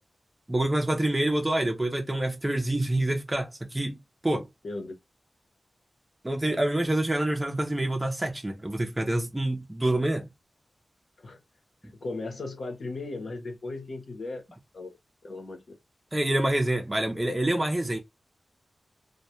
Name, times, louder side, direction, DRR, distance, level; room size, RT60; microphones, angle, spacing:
voice 1, 0.5-4.0 4.2-4.5 6.2-10.3 16.1-18.0, right 1 dB, 15° right, 0.4 m, -27 dB
voice 2, 4.6-5.0 11.2-11.4 12.0-14.4 14.7-14.9 15.2-15.8, left 2 dB, 70° left, 0.7 m, -36 dB
2.2 x 2.1 x 2.7 m
wide cardioid pair, 105°, 0 cm